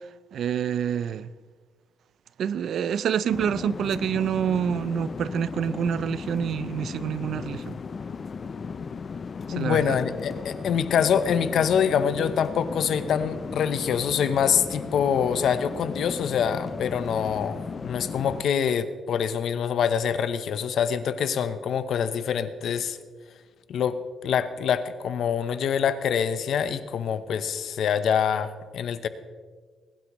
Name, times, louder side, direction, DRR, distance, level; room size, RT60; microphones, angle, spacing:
voice 1, 0.3-1.3 2.4-7.7 9.5-10.0, right 8 dB, 65° right, 0.4 m, -27 dB
sound 1, 3.3-18.4, left 5 dB, 40° left, 0.5 m, -36 dB
voice 2, 9.5-23.0 23.7-29.1, left 7 dB, 65° left, 0.8 m, -25 dB
21.0 x 11.5 x 3.1 m
cardioid pair, 115°, 0 cm